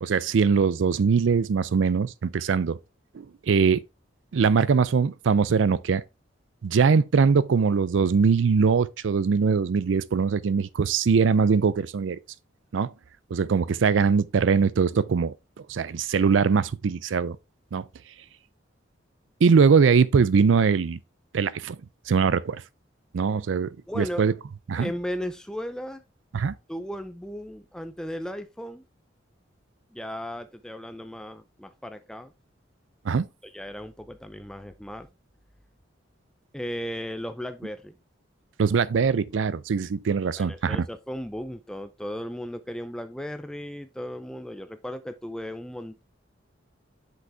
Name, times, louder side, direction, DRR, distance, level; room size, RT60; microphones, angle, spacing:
voice 1, 0.0-2.8 3.1-3.8 4.3-6.0 6.6-12.2 12.7-12.9 13.3-15.3 15.7-17.4 17.7-17.8 19.4-21.0 21.3-21.8 22.1-22.6 23.1-23.7 24.0-24.3 24.7-24.9 26.3-26.5 33.0-33.2 38.6-40.8, right 5 dB, 85° right, 0.4 m, -22 dB
voice 2, 23.9-24.3 24.7-26.0 26.7-28.8 29.9-32.3 33.5-35.1 36.5-37.9 40.4-46.0, equal, 5° left, 0.4 m, -36 dB
6.3 x 5.2 x 3.4 m
head